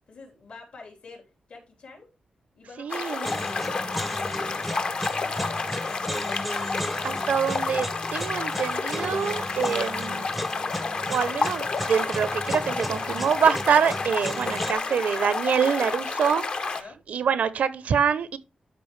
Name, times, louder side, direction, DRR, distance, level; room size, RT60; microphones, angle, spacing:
voice 1, 0.1-2.1 2.5-5.3 16.6-17.0, left 4 dB, 70° left, 4.1 m, -48 dB
voice 2, 2.8-3.3 7.0-10.3 11.1-16.4 17.1-18.4, right 7 dB, 85° right, 0.8 m, -25 dB
sound 1, 2.9-16.8, left 4 dB, 45° left, 0.8 m, -30 dB
sound 2, 3.2-14.7, equal, ahead, 0.6 m, -36 dB
12.0 x 4.9 x 3.2 m
wide cardioid pair, 130°, 2 cm